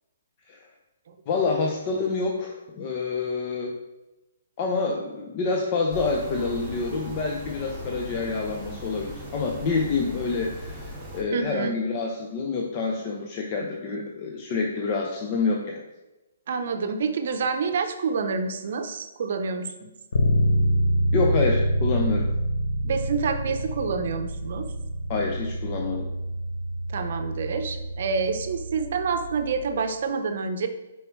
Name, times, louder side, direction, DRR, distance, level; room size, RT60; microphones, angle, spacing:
voice 1, 1.3-3.8 4.6-15.8 21.1-22.3 25.1-26.0, left 4 dB, 30° left, 0 dB, 0.6 m, -27 dB
sound 1, 5.9-11.2, equal, 5° right, 1.6 m, -38 dB
voice 2, 11.3-11.8 13.9-14.0 16.5-20.0 22.8-24.7 26.9-30.7, right 5 dB, 55° right, 7 dB, 0.7 m, -28 dB
Bass guitar, 20.1-29.9, equal, 85° left, 0.7 m, -27 dB
6.5 x 4.6 x 3.1 m, 1.0 s
hypercardioid pair, 165°, 0 cm